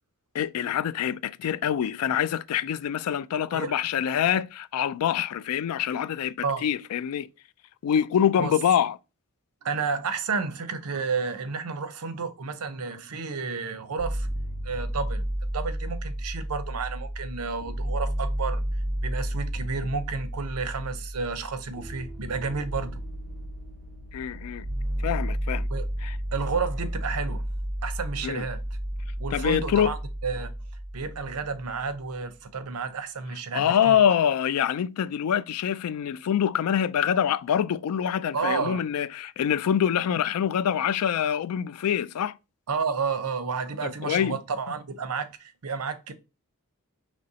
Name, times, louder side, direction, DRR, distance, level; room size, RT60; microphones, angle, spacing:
voice 1, 0.3-6.3 6.6-7.3 7.8-9.0 24.1-24.7 25.0-25.7 26.0-26.2 28.2-28.5 29.3-29.9 33.5-42.4 43.8-44.4, left 9 dB, 75° left, 0.3 m, -25 dB
voice 2, 9.6-14.3 14.6-15.2 15.5-18.6 19.0-23.0 25.7-25.9 26.3-27.4 27.8-28.6 29.2-30.0 30.2-30.5 30.9-34.0 38.3-38.8 42.7-46.1, right 5 dB, 80° right, 0.6 m, -31 dB
sound 1, 14.0-31.9, right 1 dB, ahead, 1.0 m, -32 dB
5.1 x 3.1 x 2.7 m
head